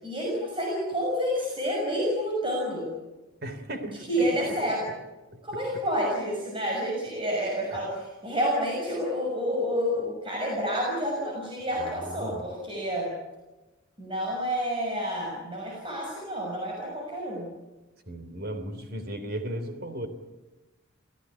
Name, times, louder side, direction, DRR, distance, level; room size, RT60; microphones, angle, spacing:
voice 1, 0.0-2.9 3.9-4.9 5.4-13.1 14.0-17.5, equal, 25° right, -2 dB, 6.3 m, -29 dB
voice 2, 3.4-4.3 5.3-5.4 7.7-7.9 11.8-12.4 18.1-20.1, right 1 dB, 50° right, 8 dB, 3.3 m, -36 dB
28.5 x 16.5 x 9.8 m, 1.1 s
head